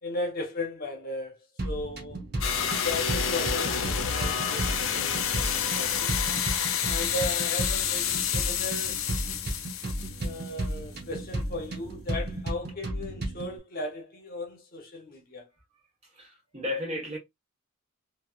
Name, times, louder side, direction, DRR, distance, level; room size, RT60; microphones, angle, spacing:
voice 1, 0.0-1.4 1.6-2.2 2.8-5.3 5.7-6.1 6.8-9.1 10.2-15.5, left 2 dB, 40° left, 0.9 m, -36 dB
sound 1, 1.6-13.6, right 1 dB, 45° right, 0.8 m, -34 dB
sound 2, 2.4-10.7, left 8 dB, 60° left, 0.5 m, -29 dB
voice 2, 16.0-17.2, left 1 dB, 30° right, 1.3 m, -34 dB
3.1 x 2.7 x 2.4 m
head